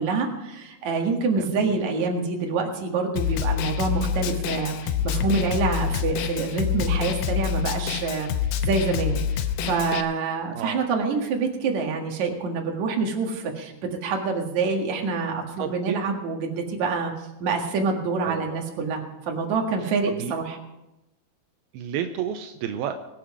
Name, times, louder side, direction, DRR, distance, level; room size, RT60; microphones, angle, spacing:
voice 1, 0.0-8.3 8.6-17.1 17.4-20.6, right 4 dB, 55° right, 1 dB, 2.8 m, -26 dB
voice 2, 1.4-1.8 10.5-10.8 15.6-16.0 18.2-18.7 19.8-20.3 21.7-22.9, right 9 dB, 80° right, 7 dB, 2.6 m, -32 dB
Snare drum, 3.2-10.0, left 9 dB, 85° left, 2.7 m, -27 dB
23.0 x 7.7 x 4.9 m, 0.97 s
omnidirectional pair, 4.4 m